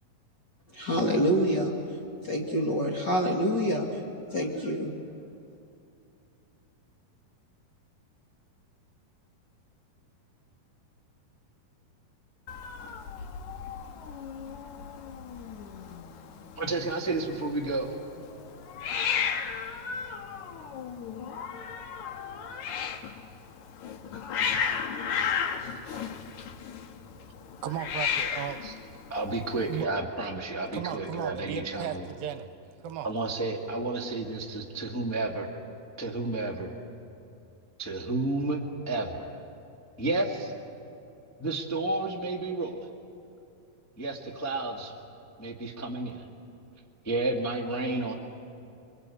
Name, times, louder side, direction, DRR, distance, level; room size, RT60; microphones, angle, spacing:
voice 1, 0.7-1.7 2.2-4.0 4.3-4.9, equal, 40° left, 0 dB, 1.6 m, -26 dB
Hiss, 12.5-29.8, left 7 dB, 65° left, 2.2 m, -34 dB
voice 2, 16.6-18.0 28.6-28.7 29.1-32.1 33.0-35.5 36.0-36.8 37.8-39.4 40.0-40.5 41.4-42.8 44.0-44.9 45.4-46.2 47.0-48.1, right 2 dB, 15° left, -1 dB, 0.6 m, -31 dB
voice 3, 27.3-28.7 29.7-29.9 30.7-32.5 32.8-33.1, right 10 dB, 75° right, 10 dB, 2.5 m, -36 dB
29.0 x 23.0 x 8.5 m, 2.6 s
omnidirectional pair, 4.4 m